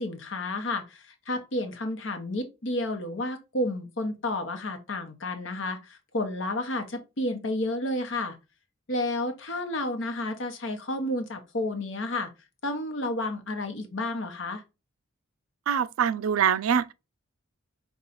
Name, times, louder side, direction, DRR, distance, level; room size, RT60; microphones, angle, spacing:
voice 1, 0.0-8.4 8.9-12.3 12.6-14.6, left 1 dB, 65° left, 1.0 m, -31 dB
voice 2, 15.7-16.9, right 8 dB, 85° right, 0.4 m, -24 dB
5.4 x 2.3 x 3.8 m
head